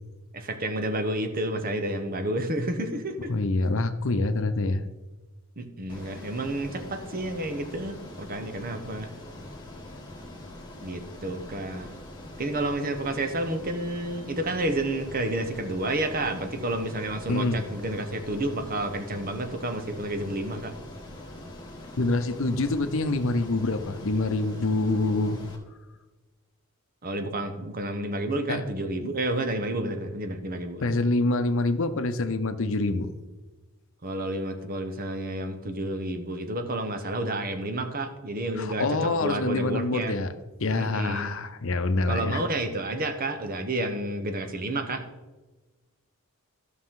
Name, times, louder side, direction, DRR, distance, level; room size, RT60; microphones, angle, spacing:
voice 1, 0.3-3.3 5.6-9.1 10.8-12.0 12.4-20.7 27.0-30.8 34.0-40.2 40.8-41.3 42.1-45.0, right 1 dB, 40° right, 7 dB, 1.0 m, -30 dB
voice 2, 3.3-4.8 17.3-17.6 22.0-25.4 28.5-28.7 29.0-29.1 30.8-33.1 38.6-40.3 40.6-42.4, left 2 dB, 65° left, 10 dB, 0.7 m, -26 dB
Ocean, 5.9-25.6, left 1 dB, 20° left, 1.8 m, -43 dB
14.0 x 6.2 x 3.8 m, 1.2 s
head